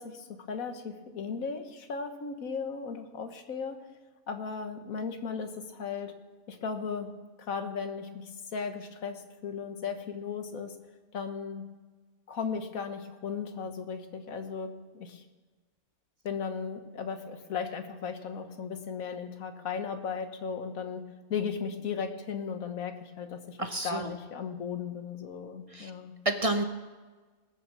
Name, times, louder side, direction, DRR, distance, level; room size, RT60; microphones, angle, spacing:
voice 1, 0.0-3.8 4.3-6.1 6.5-7.1 7.5-10.7 11.1-11.6 12.3-15.2 16.2-21.0 21.3-26.1, left 6 dB, 70° left, 7 dB, 1.6 m, -36 dB
voice 2, 23.6-24.1 25.7-25.9 26.2-26.6, right 2 dB, 35° right, 7 dB, 0.6 m, -29 dB
20.0 x 7.0 x 6.2 m, 1.3 s
omnidirectional pair, 1.5 m